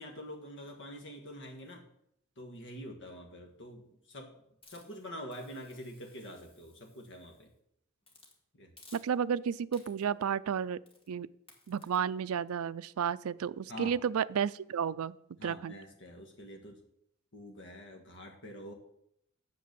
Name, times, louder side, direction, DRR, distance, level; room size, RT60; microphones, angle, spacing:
voice 1, 0.0-1.8 2.4-4.3 4.7-7.5 8.6-8.7 13.7-13.9 15.4-16.8 17.3-18.7, equal, 60° left, 3 dB, 1.6 m, -46 dB
Hiss, 4.6-7.5 8.0-8.4 8.8-9.4 9.7-10.2 10.9-11.1 11.5-12.0, left 2 dB, 25° left, 2.0 m, -60 dB
voice 2, 8.9-10.8 11.1-11.3 11.7-15.2 15.4-15.8, right 7 dB, 75° right, 16 dB, 0.4 m, -32 dB
9.1 x 7.8 x 6.8 m, 0.75 s
head